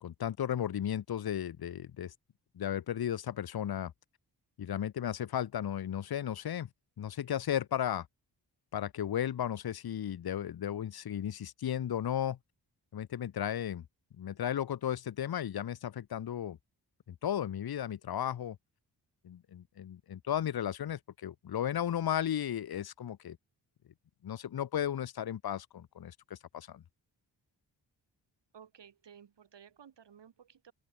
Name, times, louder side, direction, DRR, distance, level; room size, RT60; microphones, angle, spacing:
voice 1, 0.0-2.1 2.5-3.9 4.6-6.7 7.0-8.1 8.7-12.4 12.9-13.8 14.2-16.6 17.1-18.6 19.2-23.4 24.2-26.8, left 10 dB, 55° left, 0.9 m, -35 dB
voice 2, 28.5-30.7, right 8 dB, 70° right, 3.2 m, -56 dB
open air
cardioid pair, 50°, 45 cm